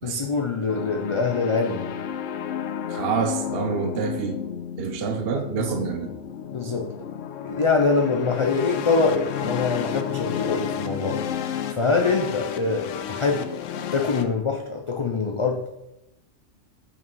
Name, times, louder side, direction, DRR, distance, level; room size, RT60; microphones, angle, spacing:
voice 1, 0.0-1.8 5.5-5.9 6.5-6.9 7.4-11.2 11.7-13.4 13.9-15.6, left 4 dB, 45° left, 2 dB, 0.4 m, -24 dB
sound 1, 0.7-14.2, left 8 dB, 80° left, 0.9 m, -32 dB
voice 2, 2.9-4.4 4.8-6.1, right 7 dB, 60° right, 6 dB, 0.8 m, -27 dB
5.9 x 5.3 x 4.6 m, 0.92 s
omnidirectional pair, 1.3 m